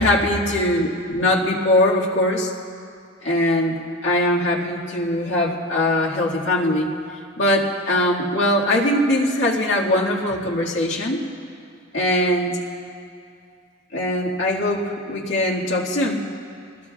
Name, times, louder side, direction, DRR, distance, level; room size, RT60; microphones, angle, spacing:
voice 1, 0.0-2.5 3.2-6.9 7.4-11.2 11.9-12.6 13.9-16.3, left 1 dB, 80° left, -3 dB, 1.9 m, -21 dB
24.0 x 19.5 x 2.3 m, 2.4 s
head